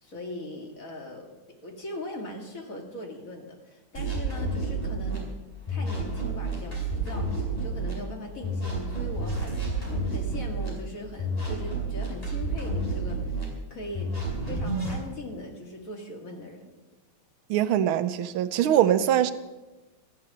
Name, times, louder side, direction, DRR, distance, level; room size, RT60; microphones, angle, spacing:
voice 1, 0.0-1.3 1.6-5.3 5.7-9.7 10.1-14.1 14.5-16.7, left 1 dB, 40° left, 1 dB, 2.5 m, -40 dB
sound 1, 3.9-5.2 5.7-7.9 8.4-10.7 11.2-13.4 13.9-15.0, right 2 dB, 15° left, 4.7 m, -30 dB
voice 2, 17.5-19.3, right 11 dB, 80° right, 12 dB, 1.5 m, -22 dB
14.0 x 10.5 x 7.4 m, 1.1 s
omnidirectional pair, 2.3 m